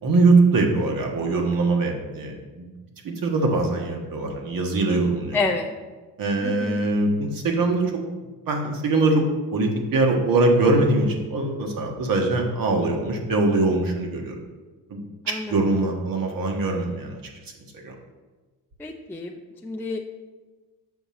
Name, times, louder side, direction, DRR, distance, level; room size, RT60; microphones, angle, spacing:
voice 1, 0.0-2.7 3.0-5.4 6.2-8.0 8.5-9.2 9.5-14.3 14.9-15.0 15.3-17.2 17.8-17.9, right 2 dB, 55° right, 2 dB, 1.6 m, -22 dB
voice 2, 5.3-5.7 6.4-6.8 15.3-15.5 18.8-20.0, left 3 dB, 5° left, 0 dB, 0.5 m, -29 dB
7.1 x 5.5 x 4.3 m, 1.3 s
supercardioid pair, 80°, 42 cm